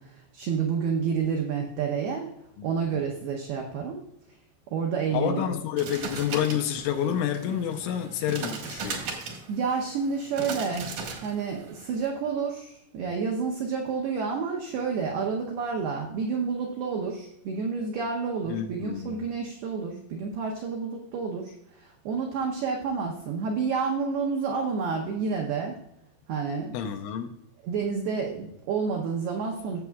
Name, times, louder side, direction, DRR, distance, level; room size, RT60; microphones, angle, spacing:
voice 1, 0.0-2.3 2.6-4.0 4.7-5.6 9.5-10.9 11.2-25.8 26.3-26.7 27.6-29.8, right 5 dB, 90° right, 0 dB, 2.2 m, -29 dB
voice 2, 5.1-9.0 18.5-19.2 26.7-27.3, left 9 dB, 85° left, 5 dB, 3.0 m, -29 dB
sound 1, 5.8-12.1, right 4 dB, 70° right, 1.9 m, -38 dB
15.5 x 7.3 x 2.3 m, 0.83 s
omnidirectional pair, 5.8 m